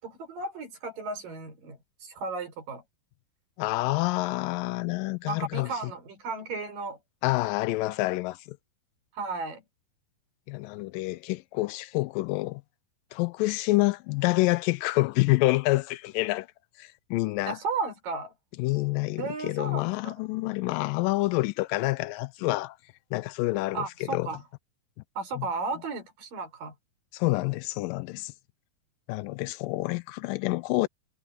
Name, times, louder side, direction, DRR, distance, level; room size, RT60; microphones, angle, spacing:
voice 1, 0.0-2.8 5.2-7.0 9.1-9.6 17.5-18.3 19.2-20.1 23.8-24.4 25.2-26.7, right 4 dB, 75° right, 7.1 m, -34 dB
voice 2, 3.6-5.7 7.2-8.6 10.5-12.6 13.1-16.5 16.8-17.6 18.6-22.8 23.1-23.8 24.1-24.3 25.4-25.5 27.1-28.3 29.1-30.9, left 20 dB, 85° left, 2.2 m, -27 dB
omnidirectional pair, 4.0 m